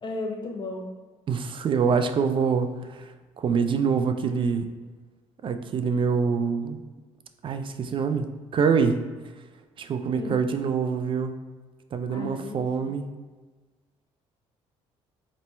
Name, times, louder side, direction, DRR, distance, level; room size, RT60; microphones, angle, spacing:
voice 1, 0.0-0.9 10.1-10.4 12.1-12.6, left 2 dB, 35° left, 2 dB, 0.9 m, -34 dB
voice 2, 1.3-3.1 3.4-4.6 5.4-6.8 7.4-8.3 8.5-9.0 9.8-11.3 11.9-13.0, right 6 dB, 45° right, 8 dB, 0.4 m, -25 dB
4.1 x 3.1 x 3.3 m, 1.3 s
supercardioid pair, 80°, 12 cm